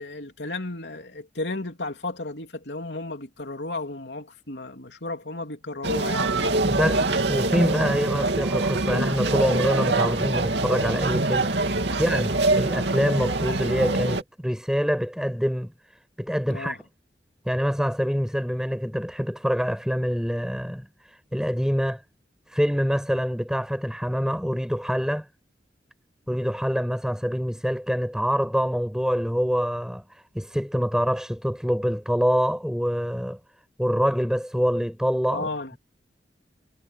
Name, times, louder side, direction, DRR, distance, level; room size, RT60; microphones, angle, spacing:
voice 1, 0.0-6.4 11.9-12.0 16.5-16.8 35.3-35.8, left 2 dB, 80° left, 3.2 m, -34 dB
sound 1, 5.8-14.2, right 2 dB, 80° right, 2.6 m, -24 dB
voice 2, 6.6-11.5 12.0-16.8 17.5-22.0 22.5-25.3 26.3-33.4 33.8-35.5, equal, 5° right, 5.8 m, -25 dB
head